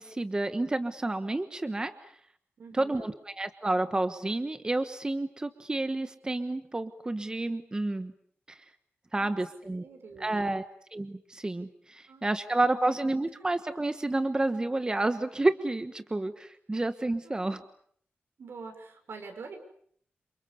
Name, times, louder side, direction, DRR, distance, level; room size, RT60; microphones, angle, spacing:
voice 1, 0.0-1.9 2.7-8.1 8.5-8.6 9.1-9.8 10.2-10.6 10.9-17.6, right 2 dB, 20° right, 10 dB, 1.2 m, -30 dB
voice 2, 2.6-3.0 9.1-9.4 9.6-10.5 12.1-12.3 12.7-12.9 16.7-16.8 17.2-17.5 18.4-19.6, right 4 dB, 75° right, 6 dB, 6.6 m, -46 dB
29.5 x 27.5 x 7.0 m, 0.63 s
wide cardioid pair, 135°, 4 cm